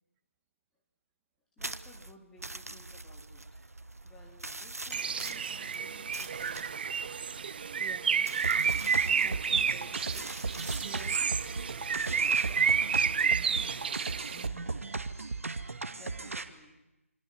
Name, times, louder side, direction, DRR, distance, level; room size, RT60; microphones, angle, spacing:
voice 1, 1.6-3.4 4.0-7.2 13.3-13.8 14.3-14.8 15.9-16.8, left 1 dB, 5° left, -1 dB, 3.8 m, -56 dB
sound 1, 1.6-14.0, right 2 dB, 90° right, 1.3 m, -45 dB
Bird, 4.9-14.5, right 6 dB, 40° right, 0.9 m, -30 dB
voice 2, 7.8-8.3 9.0-13.5 13.9-14.0, right 10 dB, 15° right, 9 dB, 1.5 m, -53 dB
sound 2, 8.4-16.4, right 3 dB, 65° right, 2.3 m, -36 dB
27.0 x 25.0 x 7.9 m, 0.97 s
figure-of-eight pair, 160°, 8 cm